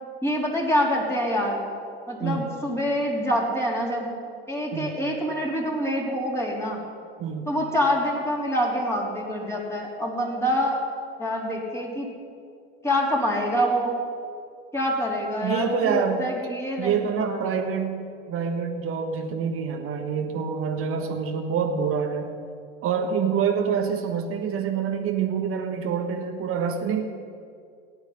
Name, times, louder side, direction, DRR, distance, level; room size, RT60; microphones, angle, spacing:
voice 1, 0.2-1.6 2.1-4.1 4.5-6.8 7.5-10.8 11.2-12.1 12.8-14.0 14.7-17.6, equal, 10° left, -3 dB, 3.8 m, -26 dB
voice 2, 2.2-2.5 4.7-5.0 7.2-7.6 15.4-16.3 16.8-22.3 22.8-27.0, right 6 dB, 45° right, 4 dB, 1.4 m, -26 dB
17.0 x 10.5 x 5.7 m, 2.3 s
hypercardioid pair, 75°, 32 cm